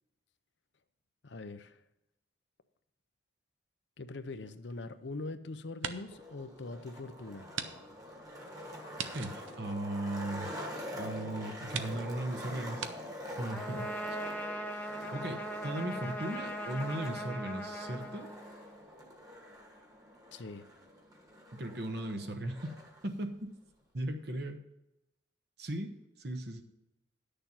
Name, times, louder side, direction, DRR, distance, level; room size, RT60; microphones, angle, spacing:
voice 1, 1.2-1.8 4.0-7.5 20.3-20.7, left 3 dB, 65° left, 10 dB, 0.7 m, -42 dB
sound 1, 4.3-5.3 5.7-6.3 6.7-6.8 7.5-7.7 8.0-8.1 8.9-10.5 11.2-11.3 11.7-12.0 12.8-12.9, right 7 dB, 80° right, 0.8 m, -41 dB
Skateboard, 6.0-23.0, equal, 20° right, 1.5 m, -45 dB
voice 2, 9.1-10.5 11.0-12.9 13.4-14.2 15.1-18.3 21.5-22.7 23.0-23.5 23.9-24.6 25.6-25.9 26.2-26.6, right 1 dB, 55° right, 5 dB, 1.1 m, -37 dB
Trumpet, 13.5-18.8, equal, 10° left, 0.8 m, -40 dB
10.5 x 6.8 x 5.7 m, 0.88 s
head